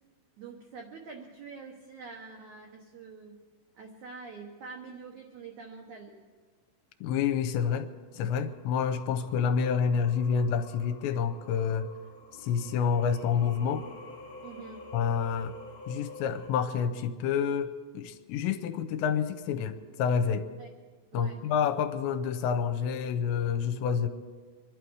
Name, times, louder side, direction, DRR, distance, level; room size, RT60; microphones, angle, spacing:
voice 1, 0.4-3.4 3.7-6.2 14.4-14.8 20.6-20.7 21.1-21.4, right 4 dB, 85° right, 1 dB, 1.7 m, -45 dB
voice 2, 7.0-11.9 12.4-13.9 14.9-15.5 15.9-20.5 21.1-24.1, left 7 dB, 80° left, 8 dB, 2.9 m, -28 dB
Singing, 8.3-16.5, left 2 dB, 45° left, 2.6 m, -48 dB
25.0 x 11.5 x 4.7 m, 1.5 s
omnidirectional pair, 5.2 m